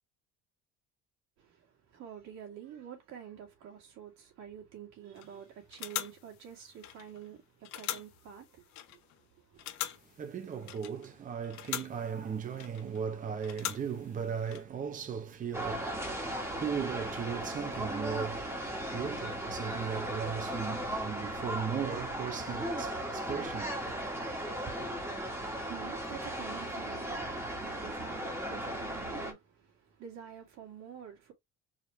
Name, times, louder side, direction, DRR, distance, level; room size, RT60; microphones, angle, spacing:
voice 1, 1.4-9.6 25.3-31.3, right 9 dB, 65° right, 2.5 m, -48 dB
sound 1, 5.2-5.4 5.7-7.3 7.6-9.2 9.6-11.2 11.4-13.0 13.4-14.6, left 13 dB, 70° left, 0.8 m, -42 dB
voice 2, 9.6-23.8 24.7-24.9, right 7 dB, 25° right, 0.7 m, -37 dB
sound 2, 15.5-29.3, right 1 dB, 10° right, 1.4 m, -37 dB
4.8 x 3.2 x 3.2 m
cardioid pair, 155°, 29 cm